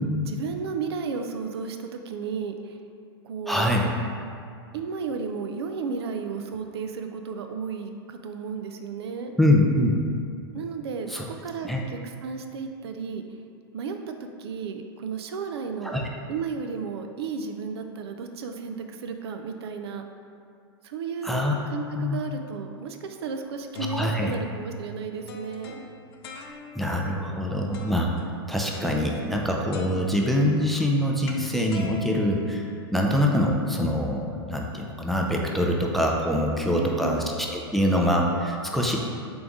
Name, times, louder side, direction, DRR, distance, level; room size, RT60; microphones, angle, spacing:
voice 1, 0.3-2.8 3.2-3.7 4.7-9.3 10.5-13.2 13.7-16.0 16.3-20.0 20.8-25.8 36.6-37.3, right 5 dB, 75° right, 5 dB, 0.4 m, -33 dB
voice 2, 3.5-3.9 9.4-9.9 11.1-11.2 11.6-11.8 15.8-16.0 21.2-21.5 22.0-22.2 23.9-24.3 26.8-28.1 28.5-39.0, left 1 dB, ahead, -1 dB, 0.4 m, -24 dB
sound 1, 23.4-27.0 27.7-28.2 28.7-29.4 29.7-33.2, left 2 dB, 70° left, 0.5 m, -41 dB
3.9 x 3.4 x 3.5 m, 2.3 s
hypercardioid pair, 110°, 14 cm